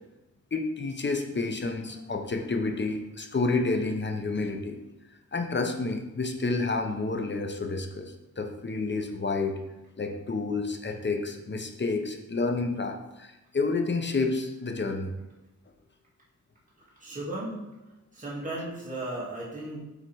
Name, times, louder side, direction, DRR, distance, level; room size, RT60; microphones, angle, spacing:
voice 1, 0.5-4.8 5.3-9.6 10.0-15.1, left 3 dB, 40° left, 5 dB, 0.9 m, -29 dB
voice 2, 17.0-17.6 18.1-19.8, right 1 dB, 25° right, -7 dB, 2.5 m, -35 dB
8.1 x 3.7 x 4.7 m, 0.98 s
wide cardioid pair, 80°, 30 cm